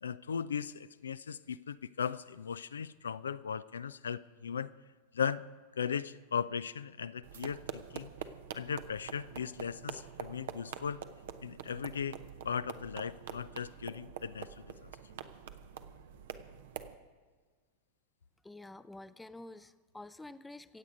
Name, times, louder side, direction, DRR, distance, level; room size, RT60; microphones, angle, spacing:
voice 1, 0.0-4.7 5.1-5.5 5.8-8.1 8.5-11.0 11.4-12.2 12.4-14.9, left 7 dB, 70° left, 15 dB, 0.4 m, -37 dB
sound 1, 7.2-16.9, right 9 dB, 55° right, 0.8 m, -46 dB
voice 2, 18.4-20.8, left 2 dB, 5° left, 14 dB, 0.5 m, -49 dB
25.0 x 8.4 x 5.1 m, 1.5 s
figure-of-eight pair, 90°, 0 cm